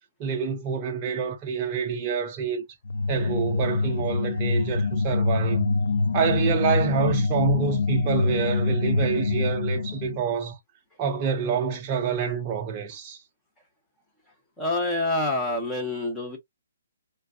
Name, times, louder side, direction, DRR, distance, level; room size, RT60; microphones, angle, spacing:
voice 1, 0.2-2.6 3.1-5.7 6.1-10.6 11.0-13.2, right 6 dB, 20° right, 0.5 m, -27 dB
sound 1, 2.8-10.2, left 3 dB, 75° left, 0.5 m, -25 dB
voice 2, 14.6-16.4, left 2 dB, 5° left, 0.8 m, -26 dB
3.3 x 2.2 x 2.4 m
hypercardioid pair, 165°, 0 cm